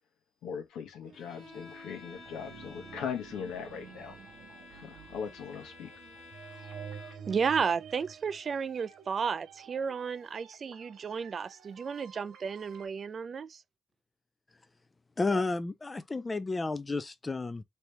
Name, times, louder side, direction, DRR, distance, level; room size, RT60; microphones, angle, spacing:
voice 1, 0.4-4.2 4.7-5.9, left 7 dB, 85° left, 1.0 m, -39 dB
sound 1, 1.0-12.9, right 7 dB, 75° right, 0.8 m, -50 dB
Bowed string instrument, 1.1-7.4, left 4 dB, 60° left, 1.2 m, -52 dB
voice 2, 7.3-13.6, right 6 dB, 45° right, 0.3 m, -33 dB
voice 3, 15.2-17.6, left 3 dB, 25° left, 0.4 m, -31 dB
3.2 x 2.8 x 3.2 m
cardioid pair, 90°, 0 cm